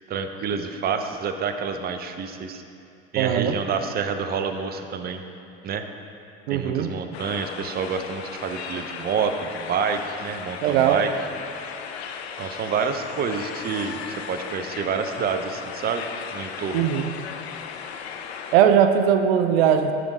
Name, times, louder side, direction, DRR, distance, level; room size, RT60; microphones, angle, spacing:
voice 1, 0.1-2.6 3.1-5.2 5.6-5.8 6.5-11.1 12.4-16.0 16.3-16.9, right 6 dB, 30° right, 7 dB, 0.6 m, -28 dB
voice 2, 3.2-3.6 6.5-6.9 10.6-11.0 16.7-17.1 18.5-19.9, right 9 dB, 75° right, 7 dB, 0.5 m, -19 dB
sound 1, 7.1-18.6, left 7 dB, 90° left, 0.5 m, -36 dB
7.5 x 5.2 x 4.9 m, 2.5 s
hypercardioid pair, 80°, 31 cm